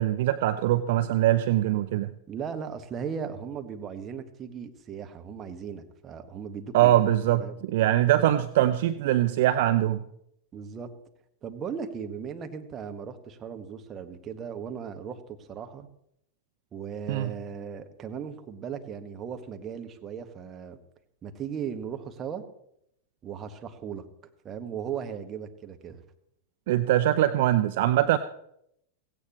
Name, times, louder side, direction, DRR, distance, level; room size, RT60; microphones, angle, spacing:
voice 1, 0.0-2.1 6.7-10.0 17.1-17.3 26.7-28.2, right 13 dB, 55° right, 12 dB, 0.5 m, -23 dB
voice 2, 2.3-7.1 7.4-7.5 10.5-10.9 11.4-15.9 16.7-20.8 21.2-22.4 23.2-24.0 24.4-26.0, right 7 dB, 30° right, 6 dB, 1.6 m, -37 dB
16.5 x 16.5 x 3.1 m, 0.74 s
figure-of-eight pair, 90°, 0 cm